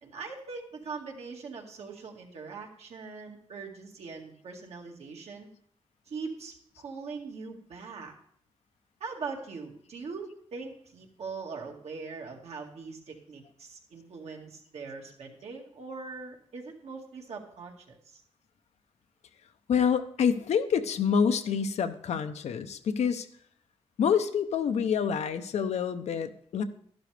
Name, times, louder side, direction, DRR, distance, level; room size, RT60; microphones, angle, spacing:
voice 1, 0.0-5.5 6.1-8.1 9.0-18.2, right 4 dB, 75° right, 0 dB, 2.0 m, -41 dB
voice 2, 19.7-23.3 24.0-26.6, left 7 dB, 85° left, 9 dB, 0.7 m, -27 dB
12.0 x 11.5 x 3.4 m, 0.63 s
wide cardioid pair, 115°, 11 cm